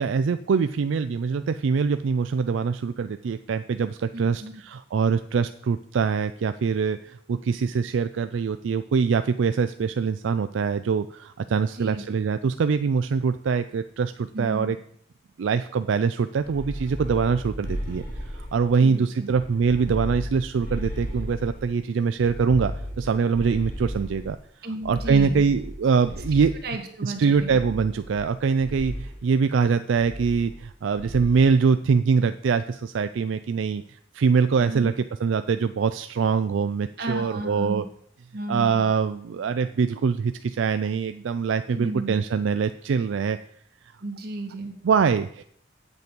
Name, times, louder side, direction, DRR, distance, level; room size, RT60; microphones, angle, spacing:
voice 1, 0.0-14.8 15.4-18.0 18.3-24.4 24.8-26.5 27.0-37.8 38.5-43.4 44.8-45.4, right 5 dB, 80° right, 10 dB, 0.4 m, -23 dB
voice 2, 4.1-4.6 11.7-12.0 14.3-14.7 18.8-19.3 24.6-25.4 26.6-27.6 34.6-34.9 37.0-37.8 38.3-38.9 41.7-42.2 44.0-44.7, right 2 dB, 55° right, 3 dB, 1.6 m, -33 dB
sound 1, 16.3-18.8 19.3-21.7 22.2-24.3 24.8-26.7 27.3-28.3 28.6-29.1 30.0-30.7 31.0-31.4, equal, 50° left, 3.3 m, -35 dB
8.3 x 7.8 x 5.2 m, 0.65 s
head